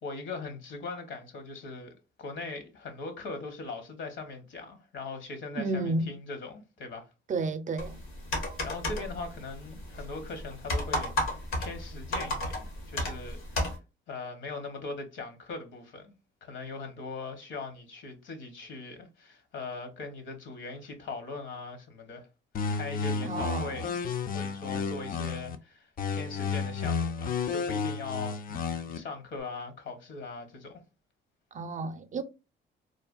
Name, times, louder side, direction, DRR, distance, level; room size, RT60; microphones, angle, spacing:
voice 1, 0.0-1.9 2.2-7.1 8.6-13.8 14.1-16.1 16.4-22.3 22.7-23.9 24.3-30.8, left 3 dB, 70° left, 0.9 m, -40 dB
voice 2, 5.6-6.1 7.3-8.0 23.2-23.9 31.5-32.2, right 3 dB, 40° right, 0.4 m, -32 dB
sound 1, 7.8-13.8, left 1 dB, 90° left, 1.1 m, -34 dB
sound 2, 22.5-25.6 26.0-29.0, left 5 dB, 45° left, 0.4 m, -32 dB
3.2 x 2.2 x 2.3 m
cardioid pair, 90°, 20 cm